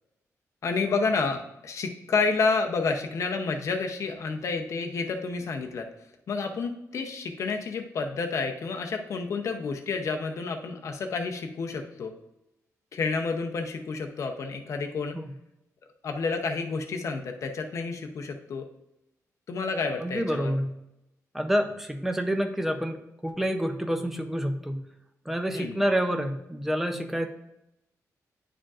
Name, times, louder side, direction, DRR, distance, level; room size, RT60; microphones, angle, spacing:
voice 1, 0.6-5.9 6.3-12.1 12.9-15.2 16.0-18.6 19.5-20.5 25.5-25.8, left 4 dB, 55° left, 4 dB, 0.6 m, -30 dB
voice 2, 20.0-20.7 21.3-24.8 25.3-27.3, equal, 5° right, 5 dB, 0.5 m, -28 dB
9.9 x 5.0 x 2.4 m, 0.88 s
wide cardioid pair, 175°, 6 cm